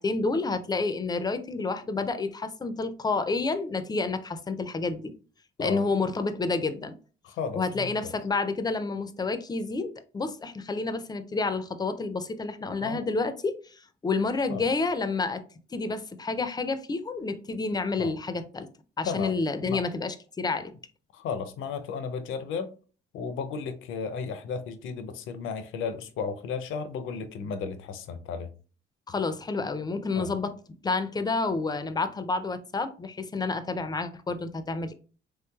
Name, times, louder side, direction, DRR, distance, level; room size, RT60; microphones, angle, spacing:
voice 1, 0.0-5.1 5.6-7.0 7.6-15.4 15.7-18.7 19.0-20.7 29.1-30.5 30.8-34.9, left 3 dB, 20° left, 0.4 m, -29 dB
voice 2, 7.2-8.1 12.8-13.0 14.5-14.6 18.0-18.1 19.0-19.8 21.1-22.7 23.1-28.5 30.2-30.3, left 5 dB, 80° left, 0.5 m, -34 dB
3.1 x 3.0 x 2.2 m
cardioid pair, 90°, 20 cm